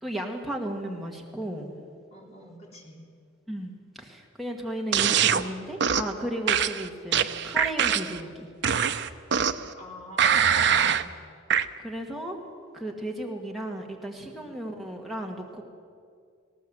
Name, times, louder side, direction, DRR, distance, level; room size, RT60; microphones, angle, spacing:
voice 1, 0.0-1.7 3.5-8.5 11.0-11.1 11.8-12.4 12.7-15.6, right 1 dB, ahead, -1 dB, 1.6 m, -34 dB
voice 2, 2.1-3.1 9.7-11.1 14.2-14.5, left 1 dB, 30° left, 0 dB, 3.1 m, -46 dB
sound 1, 4.9-5.4 5.8-6.1 6.5-8.2 8.6-9.7 10.2-11.1 11.5-11.7, right 8 dB, 55° right, 0.7 m, -23 dB
19.5 x 17.5 x 7.8 m, 2.2 s
head